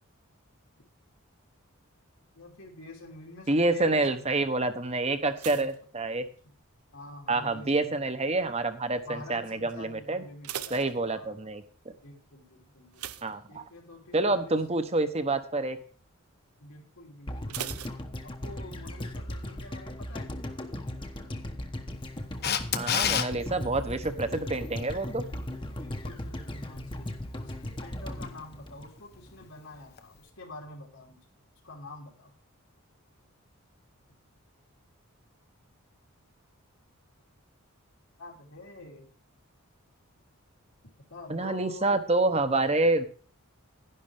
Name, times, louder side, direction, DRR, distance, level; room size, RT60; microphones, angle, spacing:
voice 1, 2.3-4.3 5.5-5.7 6.4-6.5 6.9-8.0 9.1-11.4 12.0-14.6 16.6-17.7 18.2-20.4 25.8-31.2 31.6-32.3 38.2-39.1 41.1-42.0 42.4-42.8, left 2 dB, 80° left, -2 dB, 3.2 m, -47 dB
voice 2, 3.5-6.2 7.3-10.2 10.7-11.9 13.2-13.6 14.1-15.8 22.7-25.2 41.3-43.1, right 2 dB, 30° right, 10 dB, 1.0 m, -27 dB
sound 1, 5.3-6.8 7.1-7.6 8.2-8.6 8.9-9.0 9.4-9.5 10.1-11.6 12.9-14.1 14.4-14.7 15.1-15.2 17.5-18.7 19.0-19.1, right 10 dB, 85° right, 0.7 m, -41 dB
sound 2, 17.3-29.5 29.7-29.8, left 1 dB, 20° left, 1.0 m, -37 dB
Camera, 22.4-23.3 30.0-30.1, left 8 dB, 45° left, 0.9 m, -26 dB
11.0 x 11.0 x 3.5 m, 0.42 s
head